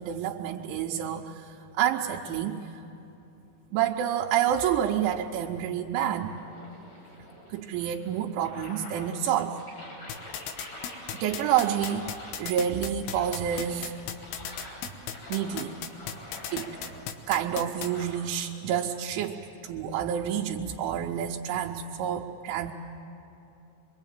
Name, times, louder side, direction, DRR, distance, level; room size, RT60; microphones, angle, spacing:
voice 1, 0.0-2.8 3.7-6.3 7.5-9.6 11.1-12.1 12.4-13.9 15.3-15.8 16.5-16.7 17.3-22.7, right 9 dB, 80° right, 0 dB, 3.2 m, -28 dB
sound 1, 6.0-18.1, left 1 dB, 40° left, 7.7 m, -46 dB
sound 2, 10.1-17.9, left 9 dB, 80° left, 3.4 m, -35 dB
25.5 x 24.0 x 8.9 m, 2.9 s
omnidirectional pair, 5.5 m